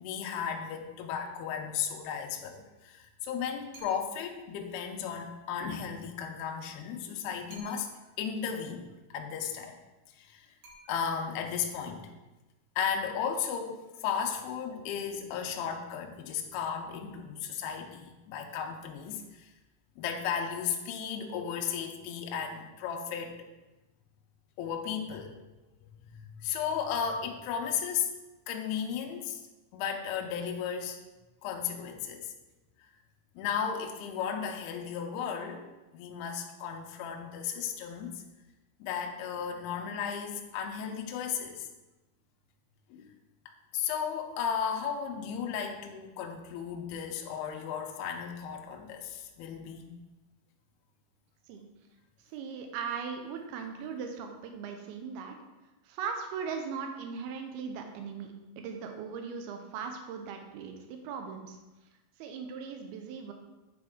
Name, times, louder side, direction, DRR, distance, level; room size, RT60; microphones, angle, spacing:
voice 1, 0.0-7.9 8.2-9.8 10.2-10.5 10.9-12.1 12.8-19.5 20.0-23.5 24.6-25.3 26.0-28.1 28.5-29.4 29.7-31.0 31.4-32.3 33.4-35.7 35.9-38.2 38.8-41.7 42.9-43.1 43.7-49.9, left 7 dB, 80° left, 2 dB, 2.4 m, -35 dB
sound 1, 3.7-4.4 7.5-8.2 10.6-11.4, right 2 dB, 65° right, 2.2 m, -54 dB
voice 2, 52.3-55.4 55.8-61.6 62.2-63.3, right 6 dB, 85° right, 4 dB, 2.2 m, -39 dB
9.7 x 4.3 x 3.6 m, 1.1 s
omnidirectional pair, 5.3 m